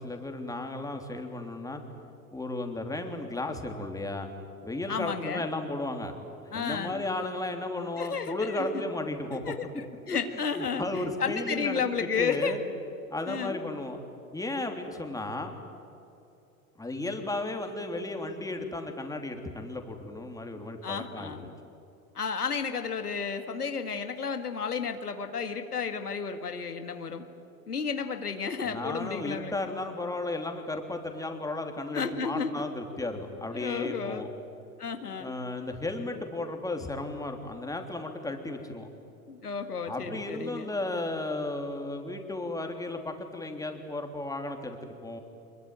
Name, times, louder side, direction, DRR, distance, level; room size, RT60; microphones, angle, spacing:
voice 1, 0.0-1.8 2.3-4.3 4.6-6.2 6.5-9.4 10.6-11.8 12.2-12.6 13.1-14.0 14.3-15.6 16.8-21.3 28.6-34.3 35.2-38.9 39.9-45.2, left 2 dB, 10° left, 4 dB, 3.3 m, -34 dB
voice 2, 4.9-5.5 6.5-7.0 8.0-8.8 9.5-12.6 13.3-13.6 20.8-21.5 22.2-27.2 27.7-29.7 31.9-32.5 33.5-34.3 34.8-35.3 39.3-40.7, left 6 dB, 90° left, 7 dB, 1.9 m, -32 dB
25.0 x 22.5 x 9.3 m, 2.8 s
hypercardioid pair, 90°, 45 cm